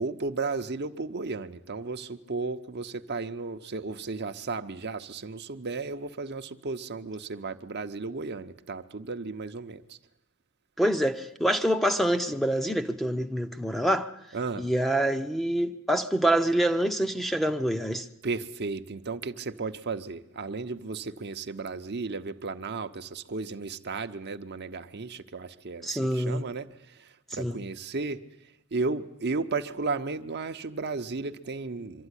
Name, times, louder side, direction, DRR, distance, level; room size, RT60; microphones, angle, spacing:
voice 1, 0.0-10.0 14.3-14.7 18.2-28.2 28.7-32.1, right 3 dB, 50° right, 0.8 m, -34 dB
voice 2, 10.8-14.1 14.6-18.1 25.8-26.5 27.3-27.6, right 1 dB, ahead, 0.7 m, -26 dB
24.0 x 13.0 x 9.8 m
head